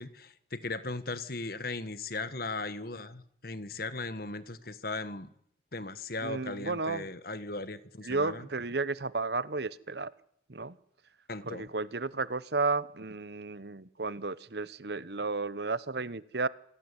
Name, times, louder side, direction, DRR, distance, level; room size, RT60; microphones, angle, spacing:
voice 1, 0.0-5.3 5.7-8.5 11.3-11.7, left 3 dB, 55° left, 13 dB, 1.6 m, -37 dB
voice 2, 6.2-7.1 8.0-10.1 10.5-10.7 11.4-16.5, right 3 dB, 60° right, 17 dB, 1.0 m, -33 dB
27.0 x 18.5 x 9.9 m, 0.70 s
head